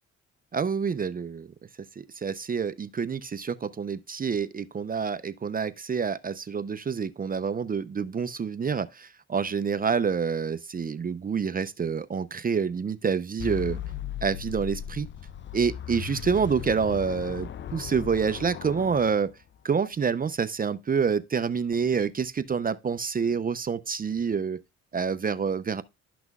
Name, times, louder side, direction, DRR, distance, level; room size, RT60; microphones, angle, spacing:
voice 1, 0.5-1.5 2.0-13.8 14.2-15.1 15.5-19.3 19.6-24.6 24.9-25.8, right 6 dB, 30° right, 0.6 m, -27 dB
sound 1, 13.4-19.6, left 9 dB, 40° left, 0.5 m, -37 dB
12.0 x 6.0 x 2.3 m
cardioid pair, 90°, 30 cm